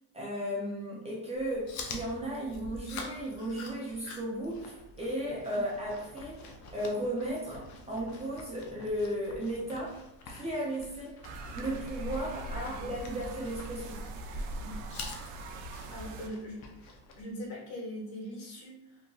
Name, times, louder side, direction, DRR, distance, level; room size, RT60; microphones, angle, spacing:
voice 1, 0.1-10.0 10.3-11.1 11.5-14.0, right 1 dB, 15° right, -5 dB, 0.4 m, -35 dB
Chewing mastication, 1.3-17.2, left 3 dB, 40° left, 0.5 m, -47 dB
sound 1, 11.2-16.3, right 1 dB, 70° right, 0.5 m, -40 dB
voice 2, 12.4-12.9 14.6-14.8 15.5-16.6 17.2-19.0, equal, 70° left, -3 dB, 1.4 m, -42 dB
2.8 x 2.6 x 2.2 m, 0.89 s
cardioid pair, 120°, 46 cm